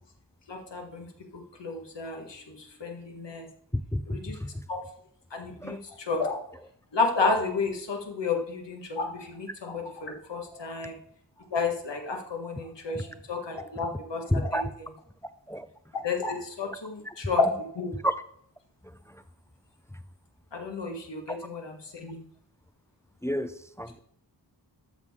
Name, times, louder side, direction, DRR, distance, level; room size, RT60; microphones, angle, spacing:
voice 1, 0.5-1.1 1.3-3.5 4.1-4.4 4.7-4.8 5.3-6.4 6.9-10.9 11.5-14.6 16.0-17.9 20.5-22.2, left 4 dB, 80° left, 2 dB, 1.6 m, -31 dB
voice 2, 3.7-4.6 5.6-5.8 12.9-13.0 14.3-14.7 15.5-15.7 17.0-17.1 17.9-18.1 19.1-19.2 21.3-21.4 23.2-23.5 23.8-24.0, equal, 5° left, 11 dB, 0.4 m, -30 dB
13.0 x 6.4 x 3.7 m, 0.66 s
wide cardioid pair, 100°, 42 cm